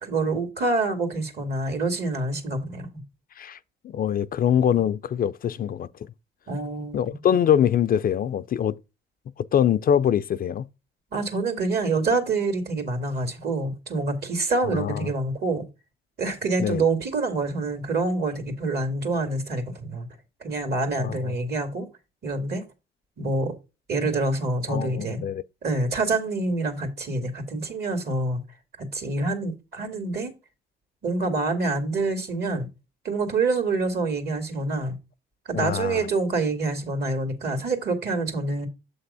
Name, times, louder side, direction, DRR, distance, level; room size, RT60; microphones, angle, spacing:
voice 1, 0.0-2.9 6.5-7.1 11.1-15.7 16.2-20.1 20.4-21.9 22.2-22.7 23.2-23.5 23.9-25.2 25.6-28.4 28.8-30.3 31.0-32.7 33.0-35.0 35.5-38.7, right 3 dB, 55° right, 2.2 m, -26 dB
voice 2, 3.8-5.9 6.9-8.8 9.5-10.7 14.6-15.1 16.6-16.8 21.0-21.3 24.7-25.4 35.5-36.1, left 9 dB, 50° left, 0.4 m, -23 dB
7.5 x 3.4 x 5.4 m
cardioid pair, 90°, 20 cm